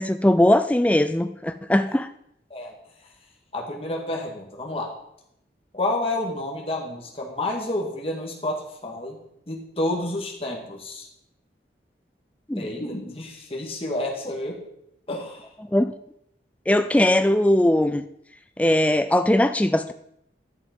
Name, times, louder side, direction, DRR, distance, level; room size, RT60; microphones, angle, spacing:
voice 1, 0.0-2.1 12.5-12.7 15.7-15.9 16.7-18.0 18.6-19.9, left 1 dB, 10° left, 10 dB, 0.3 m, -20 dB
voice 2, 3.5-4.9 5.7-9.2 9.5-11.1 12.6-14.6 15.1-15.5, left 1 dB, 35° left, -1 dB, 2.2 m, -29 dB
11.0 x 7.0 x 5.4 m, 0.76 s
head